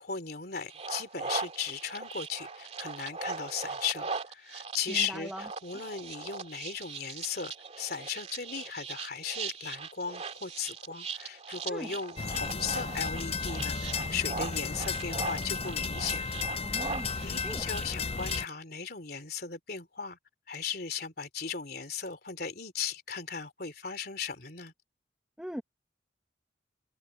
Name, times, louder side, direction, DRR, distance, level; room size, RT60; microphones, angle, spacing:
voice 1, 0.0-16.3 16.7-16.9 17.2-20.2 20.5-24.7, left 6 dB, 55° left, 3.5 m, -37 dB
sound 1, 0.7-18.4, right 4 dB, 35° right, 2.5 m, -40 dB
voice 2, 4.9-5.4 11.6-11.9 16.6-17.7 25.4-25.6, equal, 5° right, 1.6 m, -41 dB
sound 2, 12.2-18.5, left 5 dB, 30° left, 0.5 m, -34 dB
head